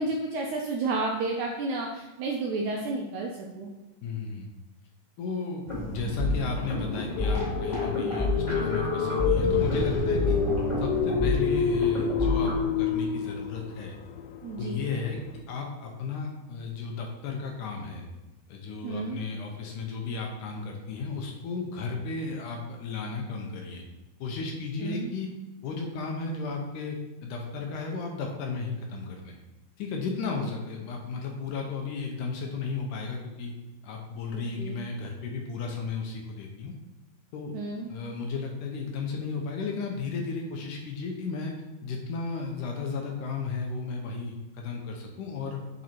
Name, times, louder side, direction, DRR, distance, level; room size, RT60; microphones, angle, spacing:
voice 1, 0.0-3.7 14.4-14.8 18.8-19.2 24.8-25.1 34.3-34.8 37.5-37.9, right 3 dB, 85° right, -1 dB, 1.7 m, -31 dB
voice 2, 4.0-4.5 5.2-10.4 10.8-14.0 14.5-15.2 15.5-18.1 18.5-23.8 24.2-25.3 25.6-29.4 29.8-33.5 33.8-36.7 37.3-37.6 37.9-41.5 41.8-45.8, left 4 dB, 75° left, 1 dB, 2.1 m, -34 dB
sound 1, 5.7-12.5, left 1 dB, 15° left, 1.7 m, -29 dB
sound 2, 7.2-15.4, left 7 dB, 90° left, 2.4 m, -29 dB
7.6 x 4.0 x 4.4 m, 1.1 s
omnidirectional pair, 4.1 m